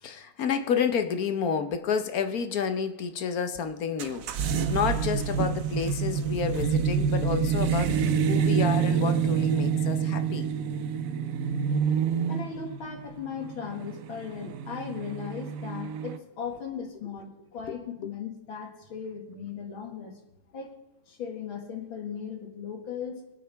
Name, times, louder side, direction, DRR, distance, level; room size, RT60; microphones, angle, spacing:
voice 1, 0.0-10.5 17.7-17.8 18.0-18.1, left 6 dB, 55° left, 1.1 m, -30 dB
sound 1, 4.0-16.2, right 7 dB, 65° right, 0.8 m, -27 dB
voice 2, 12.3-20.2 20.5-20.8 21.1-23.2, left 6 dB, 75° left, 2.7 m, -37 dB
25.0 x 8.9 x 3.4 m
omnidirectional pair, 2.3 m